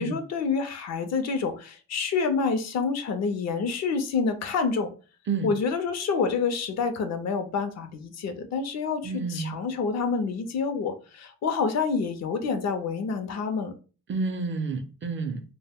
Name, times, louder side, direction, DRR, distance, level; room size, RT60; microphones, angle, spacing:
voice 1, 0.0-4.9 5.4-13.7, left 5 dB, 60° left, 8 dB, 0.5 m, -28 dB
voice 2, 9.0-9.5 14.1-15.4, right 4 dB, 40° right, 7 dB, 0.5 m, -29 dB
2.1 x 2.1 x 3.4 m, 0.36 s
cardioid pair, 90°, 30 cm